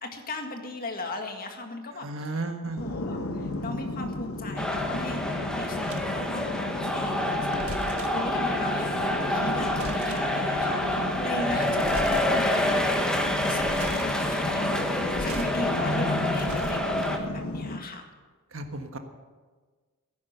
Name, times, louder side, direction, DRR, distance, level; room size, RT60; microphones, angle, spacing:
voice 1, 0.0-2.1 2.8-7.7 8.1-18.1, left 2 dB, 45° left, 4 dB, 1.9 m, -38 dB
voice 2, 1.9-2.9 11.4-12.2 18.5-19.0, right 2 dB, 65° right, 6 dB, 1.4 m, -35 dB
sound 1, 2.8-17.8, left 2 dB, 80° left, 1.2 m, -34 dB
sound 2, 4.6-17.2, left 1 dB, 5° left, 1.3 m, -27 dB
sound 3, 5.8-6.3 7.3-8.3 9.3-10.4 11.7-12.3 12.7-12.8 13.4-14.3 14.9-15.5 15.9-17.3, right 2 dB, 85° right, 1.5 m, -39 dB
16.5 x 9.9 x 6.8 m, 1.4 s
head